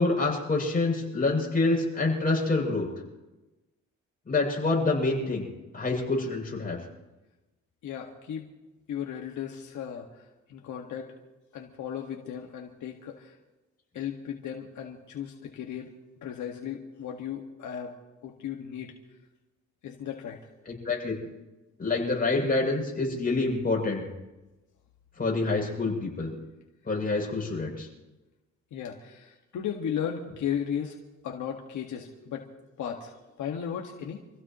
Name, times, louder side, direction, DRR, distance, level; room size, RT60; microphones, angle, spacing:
voice 1, 0.0-2.9 4.3-5.5 5.7-6.8 20.7-21.1 21.8-24.0 25.2-26.3 26.9-27.9, left 3 dB, 30° left, -1 dB, 7.6 m, -27 dB
voice 2, 7.8-8.5 8.9-11.2 11.5-13.4 13.9-15.9 16.2-17.9 18.2-18.9 19.8-20.4 28.7-32.5 32.8-34.2, left 8 dB, 75° left, 1 dB, 1.9 m, -36 dB
27.5 x 16.0 x 3.1 m, 1.1 s
cardioid pair, 90°, 30 cm